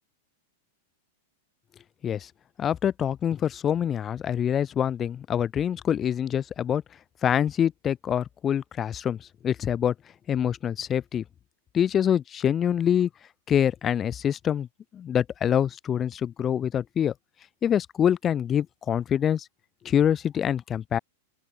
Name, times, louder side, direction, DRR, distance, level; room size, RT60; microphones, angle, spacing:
voice 1, 2.6-6.8 7.2-9.2 9.4-9.9 10.3-11.2 11.7-13.1 13.5-14.7 14.9-17.1 17.6-19.4 19.8-21.0, left 9 dB, 25° left, 0.4 m, -25 dB
open air
hypercardioid pair, 140°, 0 cm